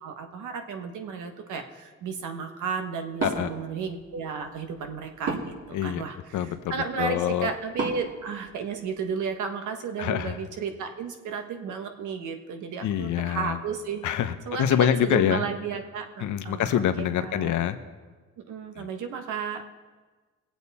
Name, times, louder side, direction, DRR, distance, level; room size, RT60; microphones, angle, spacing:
voice 1, 0.0-5.5 5.8-14.0 14.5-17.5 18.5-19.6, right 6 dB, 80° right, 5 dB, 1.4 m, -33 dB
Wood, 3.1-9.1, right 4 dB, 55° right, 2.6 m, -37 dB
voice 2, 5.7-6.0 6.3-7.5 10.0-10.4 12.8-13.6 14.0-15.4 16.2-17.8 18.8-18.9, left 10 dB, 75° left, 10 dB, 0.9 m, -26 dB
21.0 x 8.2 x 4.2 m, 1.4 s
cardioid pair, 90°, 30 cm